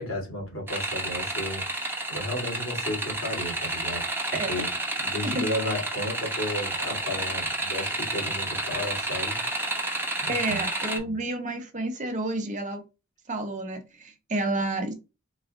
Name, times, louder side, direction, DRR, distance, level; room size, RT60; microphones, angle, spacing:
voice 1, 0.0-4.7 5.0-9.4 10.2-10.6 11.0-11.2, left 1 dB, 75° left, 2.2 m, -34 dB
sound 1, 0.7-11.0, right 2 dB, 10° right, 0.8 m, -30 dB
voice 2, 10.3-12.8 13.3-14.9, right 2 dB, 35° right, 0.8 m, -30 dB
4.0 x 2.3 x 3.6 m
head